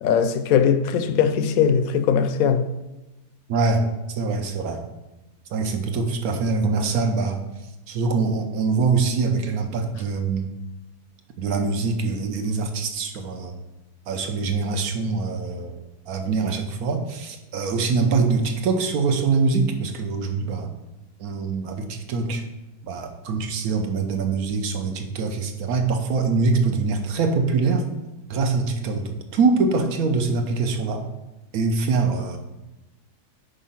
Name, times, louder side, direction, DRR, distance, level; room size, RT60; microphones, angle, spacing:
voice 1, 0.0-2.7, left 7 dB, 70° left, 0.9 m, -20 dB
voice 2, 3.5-3.8 4.2-4.8 5.5-7.4 7.9-10.5 11.4-13.5 14.1-15.7 16.1-20.7 21.2-22.4 22.8-27.9 28.3-31.0 31.5-32.4, right 4 dB, 70° right, 1.3 m, -24 dB
5.6 x 5.2 x 5.7 m
omnidirectional pair, 1.7 m